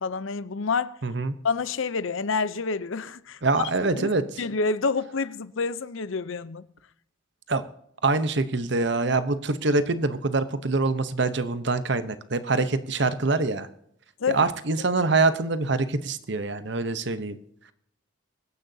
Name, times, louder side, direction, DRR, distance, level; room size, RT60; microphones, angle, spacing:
voice 1, 0.0-1.0 1.4-3.7 3.9-4.1 4.4-6.6 14.2-14.5, left 4 dB, 75° left, 0.7 m, -28 dB
voice 2, 1.0-1.4 3.4-4.4 7.5-7.6 8.0-13.7 14.3-17.4, right 3 dB, 55° right, 0.9 m, -25 dB
24.0 x 10.0 x 2.8 m
head